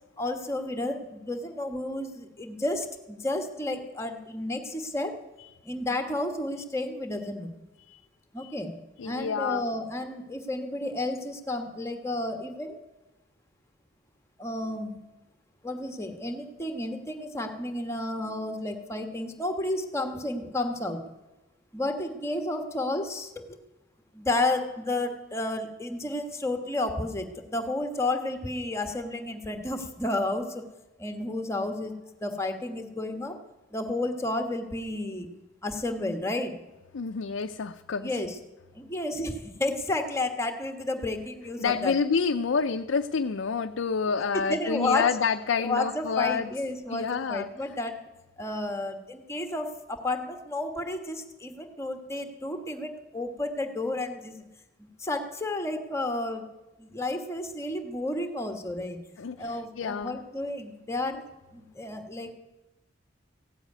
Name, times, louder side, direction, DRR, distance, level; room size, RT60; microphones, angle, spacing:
voice 1, 0.2-5.1 5.6-7.6 8.3-8.7 9.0-12.8 14.4-15.0 15.6-21.0 21.7-23.6 24.1-30.6 31.0-31.9 32.2-33.4 33.7-35.3 35.6-36.6 38.0-38.4 38.7-41.9 44.5-45.1 45.6-48.0 48.4-54.4 55.0-56.4 56.8-59.0 59.4-61.2 61.5-62.3, left 2 dB, 15° left, 5 dB, 1.3 m, -31 dB
voice 2, 9.0-9.6 36.9-38.1 41.6-46.5 46.9-47.5 59.2-60.2, left 5 dB, 85° left, 6 dB, 0.5 m, -28 dB
16.0 x 8.2 x 9.4 m, 1.0 s
head